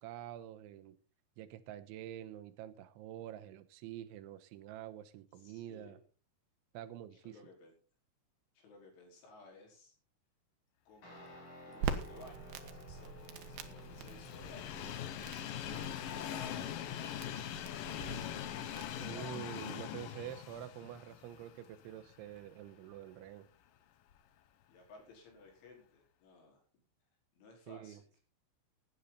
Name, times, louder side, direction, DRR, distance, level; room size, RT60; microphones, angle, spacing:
voice 1, 0.0-1.0 1.4-6.0 6.7-7.4 19.0-23.5 27.7-28.0, right 12 dB, 90° right, 11 dB, 3.4 m, -47 dB
voice 2, 5.3-6.0 7.1-7.8 8.6-10.0 10.9-14.9 16.1-19.4 24.7-26.8 27.3-28.1, left 2 dB, 85° left, 1 dB, 7.5 m, -58 dB
Guitar, 11.0-19.2, left 3 dB, 45° left, 7.1 m, -55 dB
Crackle, 11.8-19.1, right 6 dB, 65° right, 2.9 m, -44 dB
Train, 12.4-22.5 22.9-23.0 24.1-24.2, left 10 dB, 70° left, 2.2 m, -43 dB
16.5 x 10.5 x 4.2 m, 0.36 s
omnidirectional pair, 5.4 m